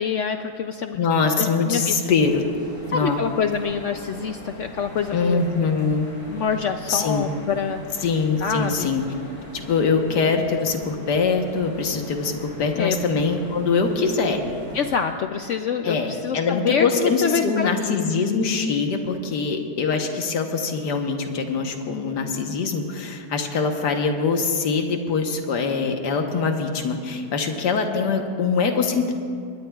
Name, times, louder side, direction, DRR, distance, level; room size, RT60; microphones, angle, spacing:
voice 1, 0.0-1.0 1.4-1.9 2.9-5.5 6.3-8.0 8.4-8.9 12.8-13.0 14.7-18.1, left 6 dB, 70° left, 7 dB, 0.7 m, -26 dB
voice 2, 1.0-2.4 2.9-3.2 5.1-6.1 6.9-7.3 8.0-9.0 9.5-14.4 15.8-29.1, left 4 dB, 90° left, 4 dB, 1.7 m, -23 dB
sound 1, 2.2-15.0, equal, 50° left, 4.4 m, -40 dB
22.5 x 20.0 x 2.3 m, 2.3 s
omnidirectional pair, 1.7 m